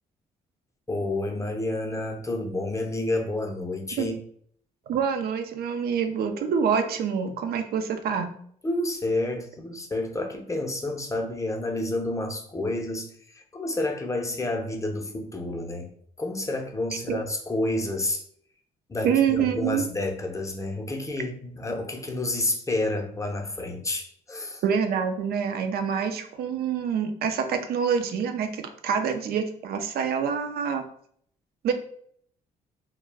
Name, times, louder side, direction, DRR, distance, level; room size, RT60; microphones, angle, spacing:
voice 1, 0.9-4.2 8.6-15.9 16.2-18.2 18.9-24.6, left 2 dB, 20° left, 2 dB, 0.6 m, -29 dB
voice 2, 4.9-8.3 17.1-17.2 19.0-19.8 24.6-30.8 31.6-31.7, right 7 dB, 65° right, 7 dB, 0.5 m, -26 dB
2.3 x 2.1 x 3.3 m, 0.62 s
supercardioid pair, 65°, 17 cm